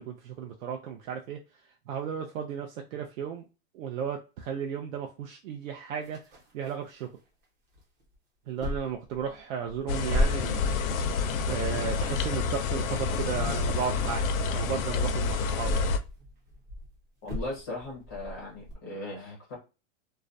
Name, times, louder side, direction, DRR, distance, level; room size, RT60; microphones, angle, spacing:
voice 1, 0.0-1.4 1.9-3.5 3.7-6.2 6.5-7.1 8.5-10.7 11.0-15.9, right 7 dB, 80° right, 3 dB, 0.5 m, -34 dB
sound 1, 6.0-7.4 7.7-8.1 8.6-14.9 15.5-18.7, equal, 35° right, 0.9 m, -36 dB
sound 2, 9.9-16.0, left 4 dB, 90° left, 0.5 m, -28 dB
voice 2, 17.2-19.5, left 2 dB, 15° left, -4 dB, 0.4 m, -38 dB
2.3 x 2.1 x 2.5 m, 0.30 s
supercardioid pair, 180°, 39 cm